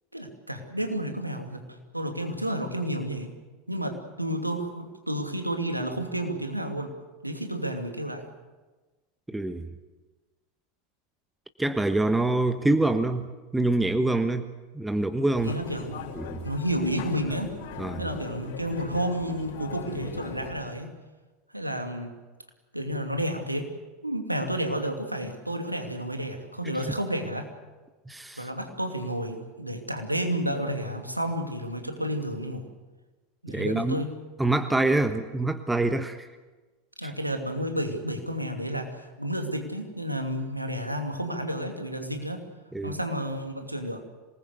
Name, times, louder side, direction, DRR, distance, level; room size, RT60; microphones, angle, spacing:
voice 1, 0.1-3.3 3.7-6.9 7.2-8.2 15.4-16.0 16.4-17.5 18.0-20.9 21.5-22.1 22.7-23.7 24.0-27.5 28.4-32.7 33.4-34.1 37.0-42.4 42.8-44.0, equal, 90° right, 4 dB, 2.6 m, -31 dB
voice 2, 9.3-9.7 11.6-15.5 16.1-16.4 17.8-18.0 28.1-28.5 33.5-34.0 34.4-36.3 37.0-37.1 42.7-43.0, right 2 dB, 5° right, 9 dB, 1.3 m, -26 dB
sound 1, 15.3-20.5, left 4 dB, 55° left, 5.4 m, -39 dB
26.0 x 20.0 x 8.2 m, 1.2 s
figure-of-eight pair, 80°, 0 cm